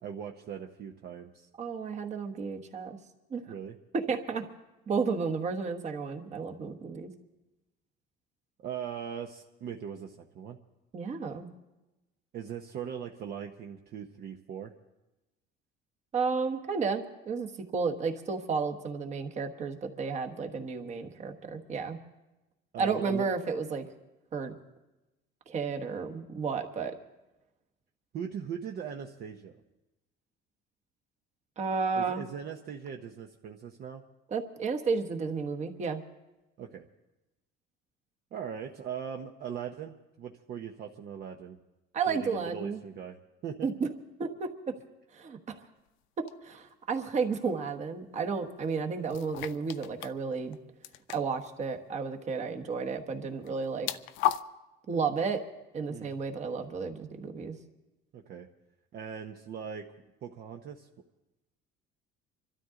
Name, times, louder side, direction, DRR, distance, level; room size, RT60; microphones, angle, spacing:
voice 1, 0.0-1.5 3.5-3.8 8.6-10.6 12.3-14.7 22.7-23.2 28.1-29.5 31.9-34.0 36.6-36.9 38.3-41.6 42.1-43.7 55.9-56.2 58.1-58.5 58.9-59.9 60.2-60.9, right 8 dB, 50° right, 2 dB, 0.9 m, -40 dB
voice 2, 1.6-3.0 3.3-3.4 3.9-4.4 4.9-7.1 10.9-11.5 16.1-22.0 22.8-23.8 24.3-24.6 25.5-26.9 31.6-32.2 34.3-36.0 41.9-42.8 43.6-43.9 44.2-44.7 45.1-45.6 46.4-50.6 51.1-53.9 54.9-55.4 55.7-57.6, right 5 dB, 35° right, 5 dB, 1.3 m, -32 dB
sound 1, 46.3-46.4 49.1-50.1 50.4-50.6 50.8-51.5 53.4-54.4, left 13 dB, 80° left, 0.6 m, -33 dB
25.5 x 13.0 x 3.8 m, 1.0 s
cardioid pair, 150°, 20 cm